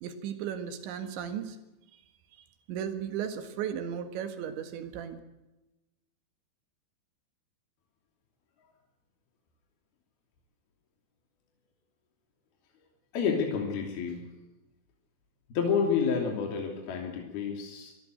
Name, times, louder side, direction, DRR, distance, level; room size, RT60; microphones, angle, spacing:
voice 1, 0.0-1.6 2.7-5.2, right 8 dB, 80° right, 8 dB, 4.0 m, -35 dB
voice 2, 13.1-14.2 15.5-17.9, left 6 dB, 60° left, 1 dB, 4.7 m, -29 dB
24.0 x 16.0 x 7.8 m, 1.0 s
omnidirectional pair, 5.3 m